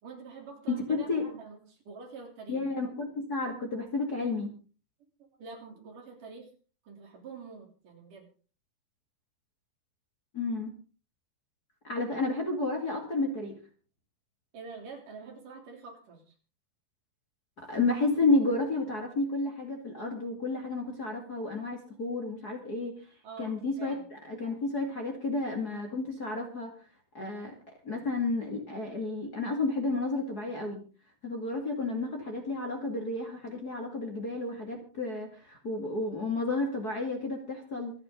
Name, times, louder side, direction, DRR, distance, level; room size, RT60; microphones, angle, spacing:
voice 1, 0.0-2.7 5.4-6.5 6.8-8.3 14.5-16.3 23.2-24.1, right 5 dB, 65° right, 2 dB, 4.8 m, -46 dB
voice 2, 0.7-1.3 2.5-4.5 10.3-10.7 11.8-13.6 17.6-22.9 23.4-24.0 24.3-26.7 27.1-27.5 27.8-30.8 31.2-37.9, left 3 dB, 30° left, 1 dB, 2.4 m, -31 dB
26.5 x 8.9 x 3.8 m, 0.37 s
omnidirectional pair, 4.1 m